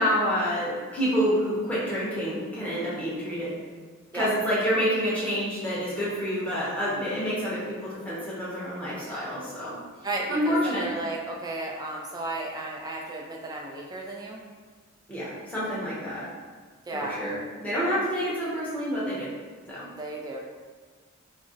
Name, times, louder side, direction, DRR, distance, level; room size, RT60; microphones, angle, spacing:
voice 1, 0.0-3.6 4.1-9.7 10.3-10.9 15.1-16.2 16.9-19.3 19.7-19.9, equal, 5° left, -9 dB, 0.7 m, -28 dB
voice 2, 10.0-14.4 16.9-17.2 20.0-20.4, right 2 dB, 20° right, -2 dB, 0.3 m, -34 dB
2.4 x 2.0 x 3.8 m, 1.5 s
head